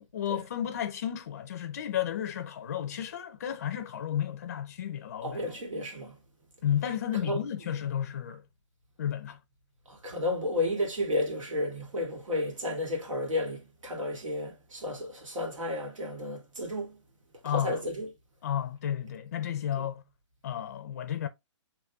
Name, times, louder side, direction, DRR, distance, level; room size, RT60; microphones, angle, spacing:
voice 1, 0.0-5.4 6.6-8.4 9.0-9.4 17.4-17.8 18.4-20.0 20.4-21.3, left 10 dB, 30° left, 0.4 m, -32 dB
voice 2, 5.2-6.2 7.1-7.4 9.9-17.0 17.4-18.1 19.8-19.9, left 1 dB, 90° right, 2.1 m, -32 dB
6.5 x 3.0 x 2.2 m
hypercardioid pair, 175°, 16 cm